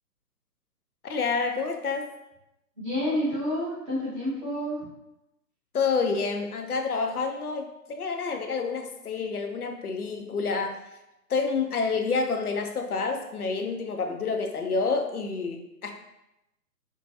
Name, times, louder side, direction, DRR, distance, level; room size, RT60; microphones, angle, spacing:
voice 1, 1.0-2.1 5.7-10.8 11.3-15.9, left 4 dB, 65° left, 4 dB, 0.6 m, -28 dB
voice 2, 2.8-4.9 14.1-14.2, left 1 dB, 20° right, -9 dB, 1.0 m, -29 dB
4.5 x 2.2 x 2.7 m, 0.90 s
figure-of-eight pair, 140°, 49 cm